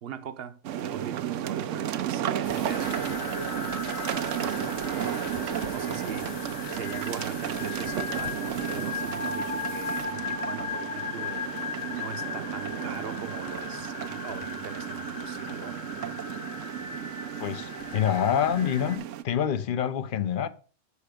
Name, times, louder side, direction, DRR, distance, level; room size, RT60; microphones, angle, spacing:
voice 1, 0.0-3.1 4.2-11.6 12.0-15.8, right 8 dB, 55° right, 1.0 m, -41 dB
sound 1, 0.6-19.2, right 10 dB, 80° right, 1.0 m, -33 dB
sound 2, 2.4-17.3 17.8-19.2, left 8 dB, 80° left, 1.1 m, -47 dB
sound 3, 2.7-19.0, left 5 dB, 30° left, 1.0 m, -37 dB
voice 2, 17.4-20.5, left 9 dB, 50° left, 0.7 m, -27 dB
8.4 x 5.7 x 5.0 m
omnidirectional pair, 1.3 m